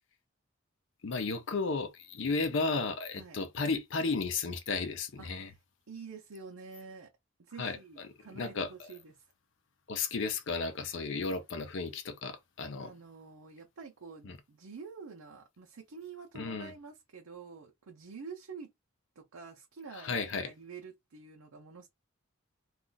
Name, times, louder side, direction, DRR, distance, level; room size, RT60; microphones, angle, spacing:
voice 1, 1.0-5.5 7.6-7.8 8.4-8.9 9.9-12.9 14.3-14.4 16.3-16.7 20.0-20.5, left 4 dB, 60° left, 0.5 m, -33 dB
voice 2, 5.2-5.6 5.9-7.1 7.4-9.1 12.8-18.7 19.2-21.9, right 5 dB, 85° right, 0.6 m, -48 dB
2.4 x 2.3 x 3.8 m
head